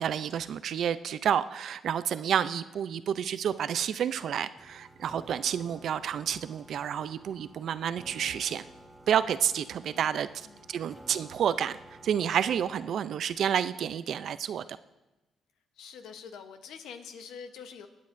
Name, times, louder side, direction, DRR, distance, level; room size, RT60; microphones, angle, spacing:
voice 1, 0.0-8.6 9.1-11.8 12.0-14.7, right 9 dB, 70° right, 14 dB, 0.4 m, -30 dB
sound 1, 4.6-12.9, right 1 dB, 5° right, 1.0 m, -52 dB
voice 2, 9.8-10.7 15.7-17.9, left 6 dB, 85° left, 8 dB, 0.9 m, -46 dB
21.5 x 9.4 x 2.6 m, 1.0 s
cardioid pair, 85°, 0 cm